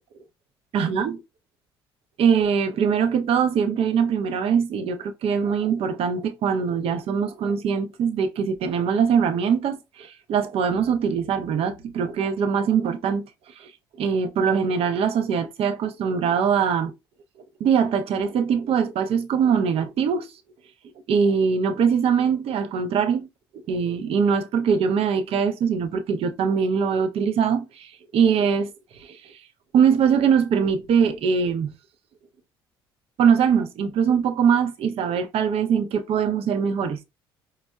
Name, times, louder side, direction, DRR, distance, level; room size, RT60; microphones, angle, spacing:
voice 1, 0.7-1.2 2.2-13.3 13.6-13.7 14.0-16.9 17.6-20.3 21.1-23.3 23.7-28.7 29.0-29.3 29.7-31.7 33.2-37.0, right 7 dB, 50° right, 0.6 m, -22 dB
5.1 x 2.0 x 2.2 m
figure-of-eight pair, 55°, 13 cm